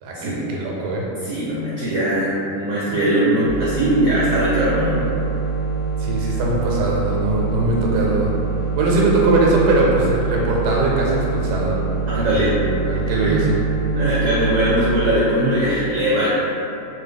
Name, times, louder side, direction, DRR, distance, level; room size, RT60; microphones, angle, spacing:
voice 1, 0.0-1.1 6.0-8.3 8.8-11.8 12.1-12.5 12.9-13.6, right 2 dB, 85° right, -3 dB, 1.2 m, -20 dB
voice 2, 1.2-5.1 12.1-12.5 13.2-13.5 13.9-16.3, right 1 dB, 65° right, -8 dB, 0.8 m, -20 dB
sound 1, 3.4-15.2, right 5 dB, 80° left, 1.1 m, -25 dB
2.7 x 2.2 x 3.4 m, 2.9 s
omnidirectional pair, 1.7 m